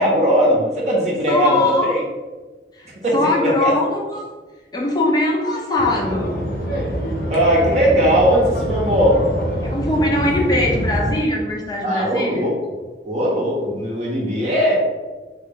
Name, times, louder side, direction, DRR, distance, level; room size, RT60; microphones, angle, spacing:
voice 1, 0.0-2.0 3.0-3.7 7.3-9.2 11.8-12.5 13.0-14.7, equal, 40° right, -4 dB, 0.6 m, -18 dB
voice 2, 1.3-1.9 2.7-4.2 4.7-6.4 9.6-12.5, left 2 dB, 20° left, -2 dB, 0.5 m, -21 dB
sound 1, 5.8-11.1, equal, 55° left, 1.0 m, -25 dB
3.8 x 2.2 x 3.7 m, 1.3 s
head